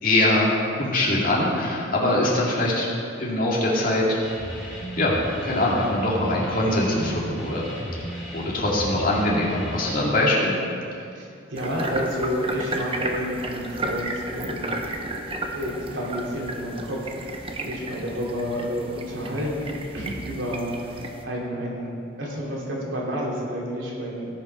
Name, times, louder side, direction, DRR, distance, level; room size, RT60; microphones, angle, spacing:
voice 1, 0.0-0.5 0.8-2.9 3.2-4.2 5.0-7.7 8.3-10.5, left 1 dB, 45° left, -4 dB, 2.4 m, -22 dB
sound 1, 4.2-9.9, right 1 dB, ahead, 3.1 m, -35 dB
voice 2, 11.1-14.7 15.5-21.9 22.2-24.4, equal, 80° right, -4 dB, 2.9 m, -30 dB
sound 2, 11.6-21.2, right 1 dB, 30° right, 0.9 m, -33 dB
17.5 x 5.9 x 5.6 m, 2.6 s
head